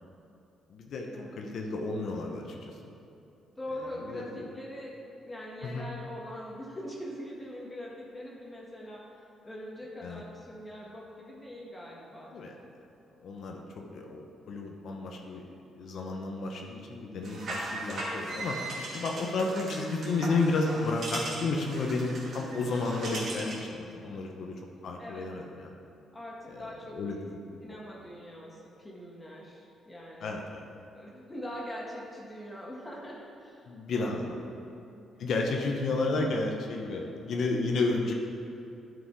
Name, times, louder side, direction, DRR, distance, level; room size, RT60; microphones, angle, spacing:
voice 1, 0.7-1.1 1.4-2.7 4.1-4.4 5.6-5.9 10.0-10.2 12.3-12.6 13.2-15.4 15.8-24.5 24.8-25.7 26.5-27.2 27.7-27.8 30.2-30.6 33.7-34.4 35.2-38.1, left 3 dB, 65° left, 1 dB, 0.8 m, -32 dB
voice 2, 3.5-4.9 5.3-12.3 24.0-24.2 25.0-25.3 26.1-27.0 27.6-30.4 30.9-34.7 35.6-35.7 36.1-36.4, equal, 20° left, -4 dB, 1.5 m, -43 dB
sound 1, 17.2-23.7, right 2 dB, 55° right, 2.0 m, -38 dB
sound 2, 19.6-23.9, right 2 dB, 30° right, 1.5 m, -43 dB
10.0 x 5.2 x 4.7 m, 2.8 s
cardioid pair, 90°, 0 cm